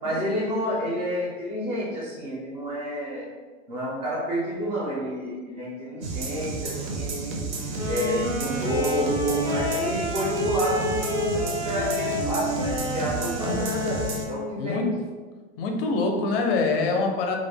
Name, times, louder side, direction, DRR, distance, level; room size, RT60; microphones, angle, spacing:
voice 1, 0.0-3.3 3.7-7.4 7.9-14.0 14.3-14.9, equal, 15° right, -5 dB, 0.4 m, -29 dB
sound 1, 6.0-14.2, right 4 dB, 70° right, 0.6 m, -32 dB
Wind instrument woodwind instrument, 7.7-14.6, left 2 dB, 85° right, 1.1 m, -30 dB
voice 2, 14.6-14.9 15.6-17.4, left 3 dB, 55° left, 3 dB, 0.4 m, -25 dB
2.3 x 2.0 x 3.3 m, 1.4 s
supercardioid pair, 165°, 35 cm